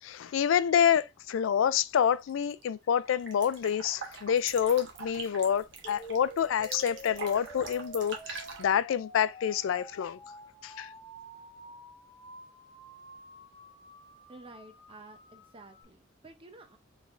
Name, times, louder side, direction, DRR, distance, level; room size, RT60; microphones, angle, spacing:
voice 1, 0.0-10.2 10.6-10.9, left 8 dB, 85° left, 0.3 m, -27 dB
sound 1, 2.3-2.6 3.0-8.6, right 5 dB, 70° right, 0.9 m, -44 dB
sound 2, 5.8-15.8, left 1 dB, 35° left, 1.2 m, -49 dB
voice 2, 14.3-16.8, right 2 dB, 30° right, 0.7 m, -51 dB
4.2 x 3.3 x 2.5 m
head